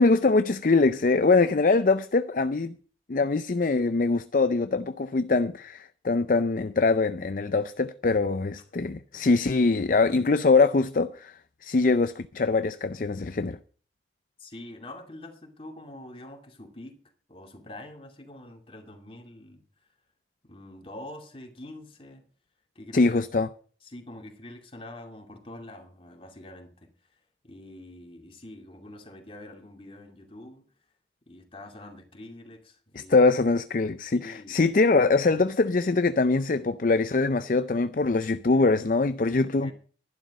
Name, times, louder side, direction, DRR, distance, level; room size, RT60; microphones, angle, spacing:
voice 1, 0.0-2.7 3.1-13.6 22.9-23.5 33.0-39.7, left 3 dB, 45° left, 0.5 m, -23 dB
voice 2, 14.4-17.0 17.3-19.6 20.4-22.2 22.8-23.2 23.8-26.9 27.4-30.7 31.3-33.2 34.1-34.7 35.2-35.4 39.5-39.7, left 1 dB, 30° left, 2.5 m, -45 dB
12.0 x 11.5 x 5.3 m
head